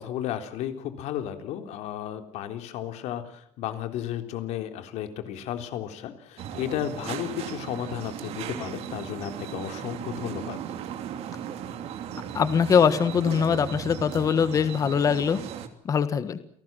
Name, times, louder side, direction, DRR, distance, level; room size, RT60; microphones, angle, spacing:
voice 1, 0.0-10.6, left 11 dB, 70° left, 8 dB, 3.7 m, -33 dB
sound 1, 6.4-15.7, right 9 dB, 60° right, 2.9 m, -37 dB
voice 2, 12.3-15.4 15.8-16.4, left 7 dB, 30° left, 12 dB, 1.5 m, -22 dB
29.0 x 18.5 x 7.6 m, 0.65 s
cardioid pair, 180°, 12 cm